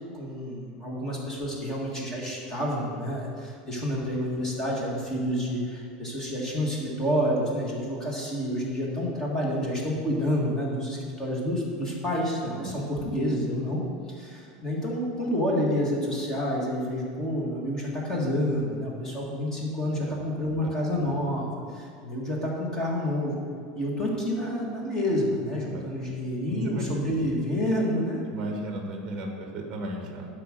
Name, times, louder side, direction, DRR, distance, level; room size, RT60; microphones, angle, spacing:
voice 1, 0.1-13.8 14.1-23.4 23.8-28.2, equal, 15° left, -3 dB, 1.8 m, -29 dB
voice 2, 26.5-26.9 28.3-30.3, right 1 dB, 20° right, 2 dB, 1.2 m, -34 dB
11.5 x 4.9 x 6.5 m, 2.3 s
supercardioid pair, 170°, 4 cm